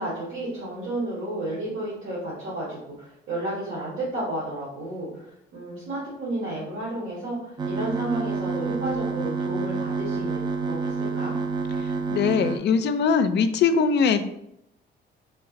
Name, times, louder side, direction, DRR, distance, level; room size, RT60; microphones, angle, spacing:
voice 1, 0.0-5.1 5.5-11.3, right 1 dB, 80° right, -8 dB, 1.4 m, -32 dB
sound 1, 7.6-12.6, right 4 dB, 20° right, 0.3 m, -28 dB
voice 2, 11.8-14.2, left 6 dB, 60° left, 10 dB, 0.4 m, -22 dB
3.2 x 2.4 x 3.9 m, 0.79 s
cardioid pair, 90°, 20 cm